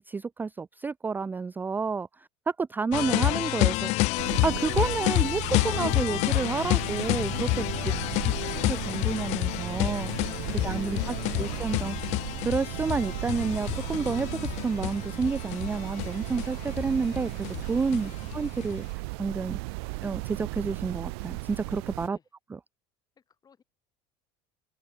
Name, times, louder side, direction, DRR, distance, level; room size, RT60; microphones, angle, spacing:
voice 1, 0.0-2.1 2.5-3.9 4.4-7.9 8.4-10.3 10.6-12.2 12.4-17.3 17.6-18.8 19.2-19.6 20.0-22.2, right 4 dB, 15° right, 0.4 m, -30 dB
sound 1, 2.9-18.8, left 23 dB, 60° left, 0.4 m, -29 dB
sound 2, 4.2-22.1, right 29 dB, 75° right, 1.3 m, -36 dB
voice 2, 17.9-18.3 22.0-22.3 23.2-23.6, left 6 dB, 30° left, 6.1 m, -65 dB
supercardioid pair, 105°, 13 cm